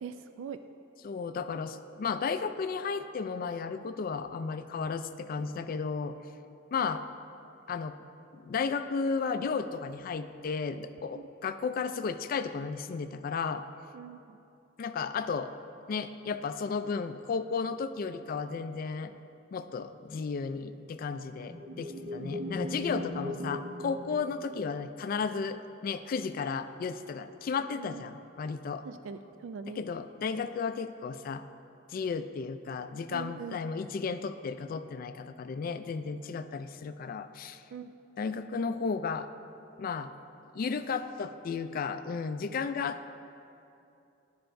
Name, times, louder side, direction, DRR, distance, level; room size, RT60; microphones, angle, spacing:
voice 1, 0.0-0.6 11.1-11.2 13.9-14.4 27.8-28.0 28.8-29.8 33.1-33.6 37.7-37.9, right 6 dB, 80° right, 10 dB, 0.3 m, -42 dB
voice 2, 1.0-6.2 6.7-7.0 7.7-7.9 8.3-13.6 14.8-15.5 15.9-19.1 19.5-28.8 29.8-31.4 31.9-37.6 38.2-39.3 39.8-40.1 40.5-43.1, left 5 dB, 50° left, 10 dB, 0.3 m, -34 dB
sound 1, 20.9-24.9, left 1 dB, 50° right, 0.9 m, -38 dB
13.0 x 5.5 x 2.6 m, 2.7 s
head